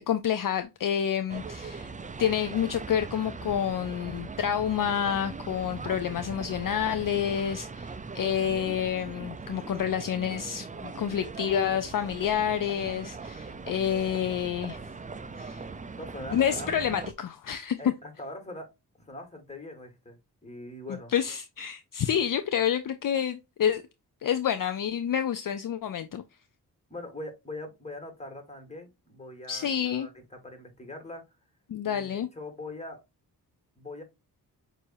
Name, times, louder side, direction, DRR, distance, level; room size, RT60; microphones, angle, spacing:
voice 1, 0.1-1.9 2.2-14.8 15.4-15.6 16.3-17.8 20.9-23.8 24.2-26.2 29.5-30.1 31.7-32.3, left 9 dB, 55° left, 0.5 m, -28 dB
sound 1, 1.3-17.1, right 4 dB, 20° right, 0.4 m, -40 dB
voice 2, 5.9-6.4 16.0-16.7 17.8-18.7 19.0-21.1 22.1-22.3 26.9-31.2 31.9-33.0 33.8-34.0, left 2 dB, 15° left, 1.8 m, -42 dB
6.3 x 2.7 x 2.6 m
cardioid pair, 75°, 40 cm